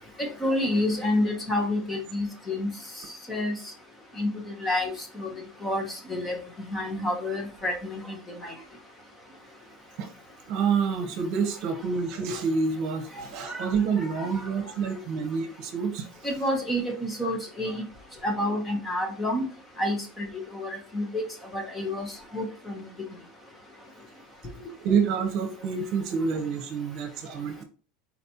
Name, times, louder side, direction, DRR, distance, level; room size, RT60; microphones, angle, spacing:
voice 1, 0.2-2.7 3.3-3.5 4.2-5.3 5.6-6.4 6.7-8.2 8.4-8.5 13.2-13.7 14.2-14.4 16.2-17.8 18.2-19.4 19.8-20.3 20.5-21.2 21.5-22.1 22.3-22.8, left 1 dB, 10° left, 3 dB, 0.9 m, -29 dB
voice 2, 10.5-16.1 24.8-27.6, right 5 dB, 45° right, 6 dB, 0.9 m, -28 dB
4.3 x 4.1 x 2.8 m, 0.36 s
supercardioid pair, 170°, 0 cm